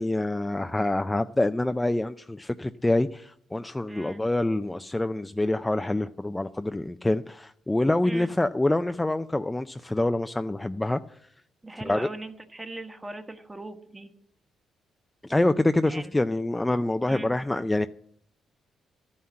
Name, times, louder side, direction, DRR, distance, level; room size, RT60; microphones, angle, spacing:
voice 1, 0.0-11.0 11.8-12.1 15.2-17.9, left 2 dB, 10° left, 0.4 m, -26 dB
voice 2, 3.9-4.2 8.0-8.3 11.6-14.1 15.8-16.1 17.1-17.3, right 2 dB, 15° right, 1.2 m, -39 dB
12.5 x 5.7 x 8.5 m
cardioid pair, 90°, 0 cm